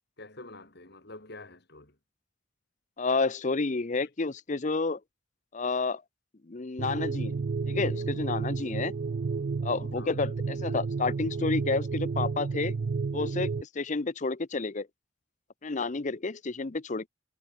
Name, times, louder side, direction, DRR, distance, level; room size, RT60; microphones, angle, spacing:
voice 1, 0.2-2.0 4.0-4.1 10.0-10.2, left 2 dB, 55° left, 3.6 m, -47 dB
voice 2, 3.0-5.0 5.5-6.0 6.5-7.4 7.7-8.9 9.6-12.7 13.1-14.9 15.6-17.1, left 3 dB, 40° left, 0.7 m, -30 dB
sound 1, 6.8-13.6, right 4 dB, 50° right, 0.4 m, -31 dB
head